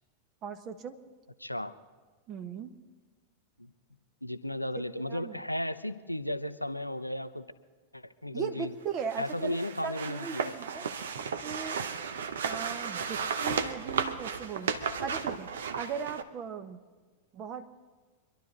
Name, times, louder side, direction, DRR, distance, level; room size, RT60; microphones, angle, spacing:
voice 1, 0.4-1.0 2.3-2.8 4.7-5.4 8.3-10.9 11.4-11.8 12.4-16.8 17.3-17.7, right 6 dB, 30° right, 8 dB, 1.2 m, -38 dB
voice 2, 1.4-1.7 3.6-3.7 4.2-7.5 7.9-8.7 9.2-10.6, left 1 dB, 90° left, 12 dB, 0.6 m, -35 dB
sound 1, 9.0-16.2, right 6 dB, 65° right, 0.9 m, -34 dB
25.0 x 12.0 x 4.0 m, 1.4 s
figure-of-eight pair, 90°, 0 cm